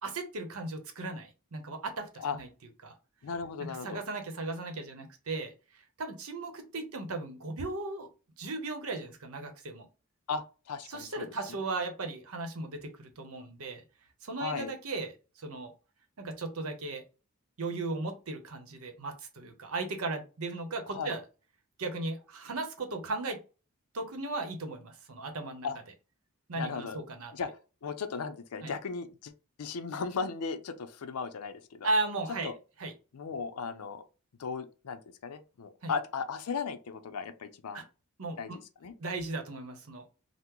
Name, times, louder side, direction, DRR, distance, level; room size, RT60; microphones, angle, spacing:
voice 1, 0.0-2.5 2.8-2.9 3.6-5.5 6.0-8.1 8.4-9.9 10.9-13.8 14.2-15.7 16.2-17.0 17.6-21.2 21.8-23.4 23.9-25.7 26.5-27.3 28.6-28.7 31.8-32.5 32.8-32.9 35.8-35.9 37.7-37.8 38.2-38.6 39.0-40.1, right 2 dB, 70° right, 0.8 m, -36 dB
voice 2, 3.2-4.0 10.3-11.6 14.4-14.7 20.9-21.1 25.6-25.8 26.5-27.0 27.3-27.5 27.8-29.3 29.6-31.9 32.4-32.5 33.1-34.0 34.4-37.8 38.4-38.9, left 5 dB, 90° left, 0.5 m, -36 dB
3.6 x 2.0 x 2.9 m
head